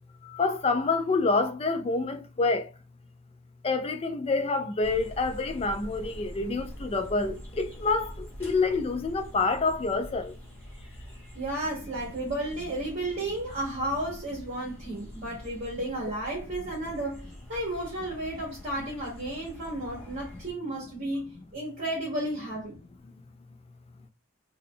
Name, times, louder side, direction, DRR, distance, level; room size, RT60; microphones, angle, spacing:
voice 1, 0.2-2.7 3.6-10.3, left 3 dB, 25° left, 0.3 m, -27 dB
sound 1, 4.8-20.5, equal, 10° left, 1.5 m, -45 dB
voice 2, 11.3-22.7, right 1 dB, 35° right, 1.4 m, -33 dB
3.7 x 2.2 x 3.7 m
head